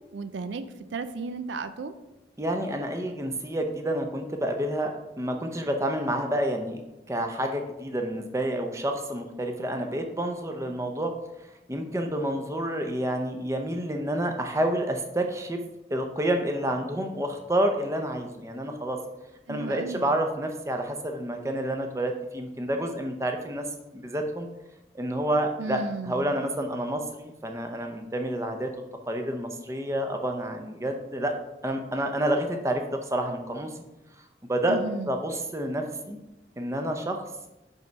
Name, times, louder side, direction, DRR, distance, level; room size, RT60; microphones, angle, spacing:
voice 1, 0.0-1.9 19.5-20.1 25.6-26.3 34.7-35.1, right 4 dB, 85° right, 11 dB, 0.4 m, -34 dB
voice 2, 2.4-6.8 7.1-11.1 11.7-15.6 15.9-19.0 19.5-23.7 23.9-24.5 24.9-28.7 29.1-31.3 31.6-33.7 34.5-34.8 35.1-36.2 36.6-37.2, right 1 dB, 15° right, 4 dB, 0.6 m, -29 dB
5.4 x 5.4 x 4.6 m, 0.95 s
head